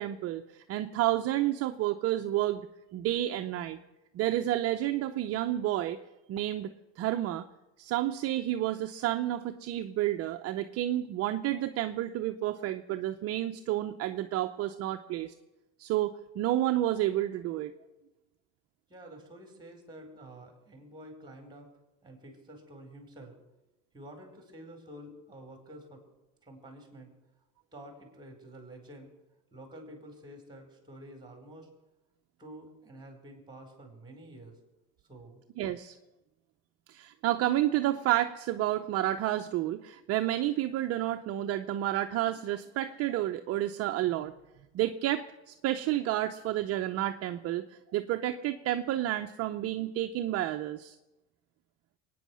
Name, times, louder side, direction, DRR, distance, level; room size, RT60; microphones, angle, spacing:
voice 1, 0.0-2.7 2.9-3.8 4.1-6.0 6.3-7.5 7.8-15.3 15.8-17.7 35.6-36.0 36.9-44.3 44.7-47.7 47.9-51.0, right 13 dB, 45° right, 6 dB, 0.8 m, -30 dB
voice 2, 18.9-21.7 22.0-23.4 23.9-26.0 26.4-27.1 27.7-29.1 29.5-31.7 32.4-34.6 35.1-35.4, right 1 dB, 15° right, 3 dB, 4.3 m, -49 dB
22.5 x 9.4 x 6.3 m, 1.0 s
supercardioid pair, 120°, 33 cm